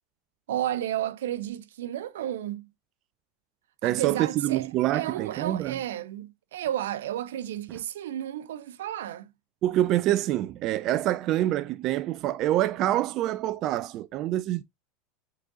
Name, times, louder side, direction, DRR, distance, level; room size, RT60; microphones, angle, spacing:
voice 1, 0.5-2.7 3.8-4.7 4.9-9.3, right 12 dB, 85° right, 0.7 m, -32 dB
voice 2, 3.8-5.7 9.6-14.6, right 14 dB, 50° right, 0.4 m, -26 dB
7.5 x 3.9 x 3.6 m
hypercardioid pair, 110°, 0 cm